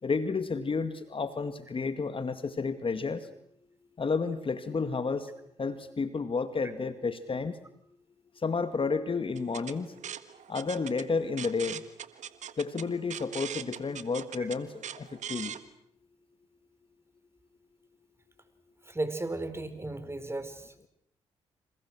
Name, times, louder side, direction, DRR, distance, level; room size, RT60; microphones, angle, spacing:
voice 1, 0.0-3.3 4.0-5.3 5.6-7.6 8.4-9.9 10.5-11.8 12.6-15.6, left 4 dB, 40° left, 11 dB, 2.1 m, -31 dB
sound 1, 9.4-15.6, right 9 dB, 65° right, 1.6 m, -41 dB
voice 2, 18.9-20.7, right 2 dB, 20° right, 11 dB, 4.9 m, -35 dB
29.5 x 27.5 x 6.3 m, 0.71 s
hypercardioid pair, 45°, 13 cm